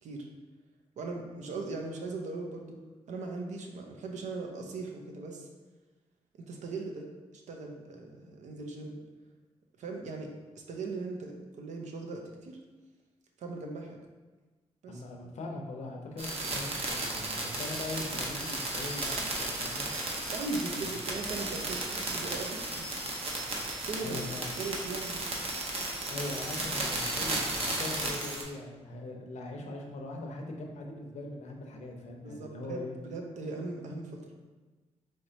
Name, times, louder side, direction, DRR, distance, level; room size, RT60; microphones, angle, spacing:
voice 1, 1.0-2.8 3.1-5.5 6.3-7.1 7.5-9.0 9.8-10.3 10.7-12.6 13.4-14.0 14.8-15.0 20.3-23.0 23.4-24.2 24.5-25.4 32.2-34.4, right 3 dB, 85° right, 2 dB, 0.6 m, -39 dB
voice 2, 14.9-19.8 20.8-20.9 24.0-24.5 26.1-32.9, left 2 dB, 75° left, 2 dB, 0.7 m, -41 dB
sound 1, 16.2-28.4, right 2 dB, 55° right, 0.8 m, -34 dB
4.5 x 3.1 x 2.7 m, 1.3 s
cardioid pair, 80°, 12 cm